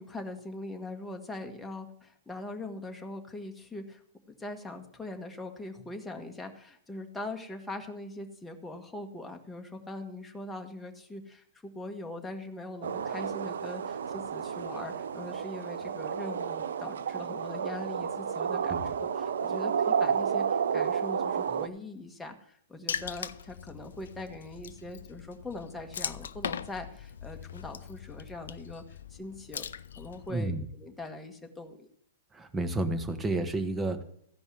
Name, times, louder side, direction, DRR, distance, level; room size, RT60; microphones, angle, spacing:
voice 1, 0.0-4.0 4.4-28.8 29.1-29.7 30.0-31.9, left 2 dB, 5° left, 3 dB, 1.6 m, -41 dB
sound 1, 12.8-21.7, right 7 dB, 70° right, 0.6 m, -31 dB
Water / Splash splatter, 22.9-30.3, left 7 dB, 70° left, 0.5 m, -40 dB
voice 2, 30.3-30.7 32.3-34.0, right 2 dB, 15° right, 8 dB, 1.4 m, -31 dB
14.5 x 5.3 x 7.8 m, 0.67 s
hypercardioid pair, 115°, 0 cm